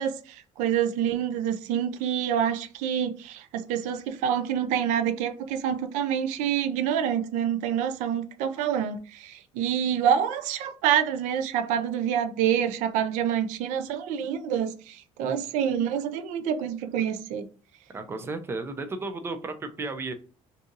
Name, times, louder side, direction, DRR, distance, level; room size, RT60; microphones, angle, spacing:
voice 1, 0.0-17.5, right 9 dB, 90° right, 0.4 m, -27 dB
voice 2, 17.9-20.1, right 3 dB, 20° right, 0.3 m, -33 dB
2.6 x 2.5 x 3.8 m
cardioid pair, 160°, 12 cm